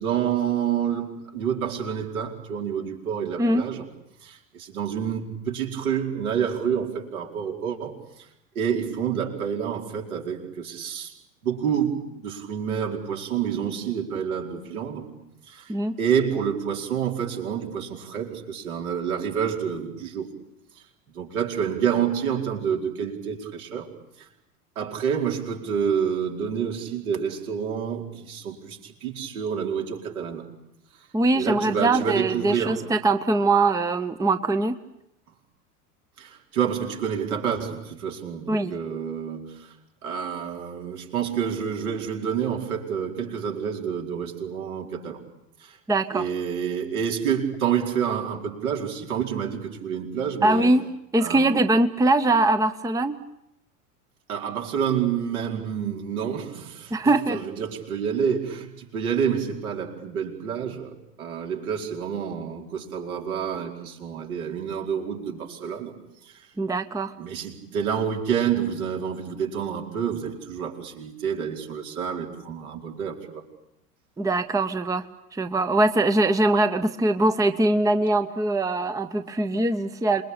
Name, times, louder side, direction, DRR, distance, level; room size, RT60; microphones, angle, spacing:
voice 1, 0.0-3.8 4.2-8.3 8.5-11.1 11.4-15.1 15.5-15.7 16.0-20.3 21.1-23.9 24.2-24.3 24.8-30.5 31.3-32.8 36.2-39.7 40.0-45.2 45.6-45.8 46.1-50.7 51.2-51.5 54.3-66.0 66.2-66.5 67.2-73.4, right 8 dB, 70° right, 1 dB, 4.8 m, -28 dB
voice 2, 31.1-34.8 38.5-38.7 45.9-46.3 50.4-50.9 51.1-53.2 56.9-57.4 66.6-67.1 74.2-80.2, right 2 dB, 10° right, 11 dB, 0.9 m, -22 dB
27.0 x 21.5 x 8.7 m, 0.81 s
figure-of-eight pair, 85°, 45 cm